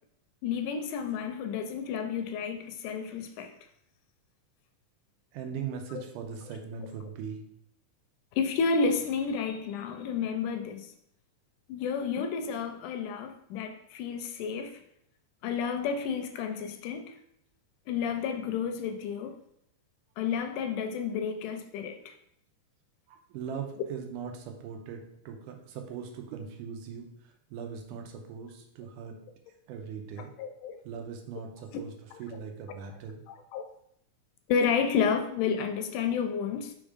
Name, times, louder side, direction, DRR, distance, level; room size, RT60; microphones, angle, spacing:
voice 1, 0.4-3.5 5.9-6.0 8.3-10.9 11.7-14.8 15.4-17.2 17.9-19.4 20.2-22.1 30.4-30.8 33.3-33.7 34.5-36.7, left 6 dB, 80° left, 1.9 m, -31 dB
voice 2, 5.3-7.4 23.1-29.2 29.7-30.3 30.8-31.9 32.2-33.2, right 6 dB, 80° right, 2.3 m, -40 dB
5.3 x 3.6 x 4.8 m
omnidirectional pair, 3.7 m